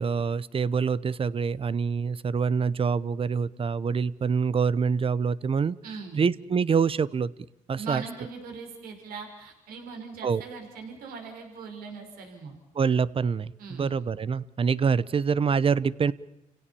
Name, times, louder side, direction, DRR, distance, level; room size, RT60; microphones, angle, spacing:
voice 1, 0.0-5.8 6.2-7.3 7.7-8.0 10.2-10.4 12.7-16.1, right 6 dB, 40° right, 18 dB, 0.9 m, -25 dB
voice 2, 5.8-6.3 7.8-12.5 13.6-14.0, right 5 dB, 85° right, 3 dB, 5.5 m, -40 dB
29.5 x 17.5 x 7.0 m, 0.89 s
cardioid pair, 90°, 15 cm